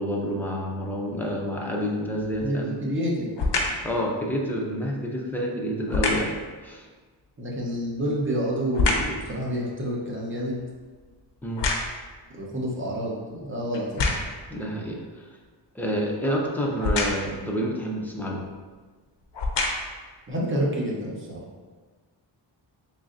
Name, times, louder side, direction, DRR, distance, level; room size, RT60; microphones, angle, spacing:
voice 1, 0.0-2.9 3.8-6.3 6.6-6.9 11.4-11.7 14.5-15.2 15.7-18.4, equal, 5° left, -2 dB, 0.4 m, -28 dB
sound 1, 2.2-2.6 3.3-3.9 5.9-6.4 7.8-9.2 9.7-12.2 12.9-13.0 13.7-14.5 16.8-17.4 18.4-18.5 19.2-20.0 20.7-20.8, left 3 dB, 65° left, 0.6 m, -27 dB
voice 2, 2.4-3.4 7.4-10.6 12.3-14.1 20.3-21.4, equal, 25° right, -4 dB, 0.7 m, -28 dB
3.8 x 3.1 x 2.5 m, 1.4 s
wide cardioid pair, 135°, 45 cm